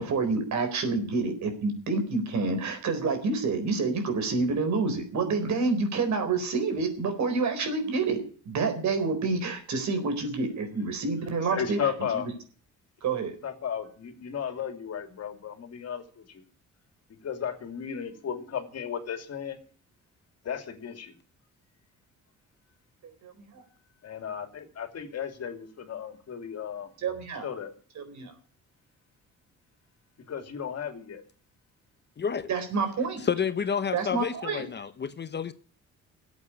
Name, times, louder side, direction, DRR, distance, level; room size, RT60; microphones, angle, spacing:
voice 1, 0.0-11.8 13.0-13.3 23.0-23.6 27.0-27.5 28.0-28.3 32.5-33.2 33.9-34.6, right 4 dB, 65° right, 4.2 m, -28 dB
voice 2, 11.5-12.3 13.4-16.4 17.2-19.6 20.4-21.1 24.0-26.9 27.4-27.7 30.3-31.2, left 8 dB, 55° left, 2.8 m, -34 dB
voice 3, 32.2-32.5 33.2-35.5, left 7 dB, 35° left, 0.9 m, -30 dB
13.0 x 8.4 x 9.7 m
cardioid pair, 90°, 30 cm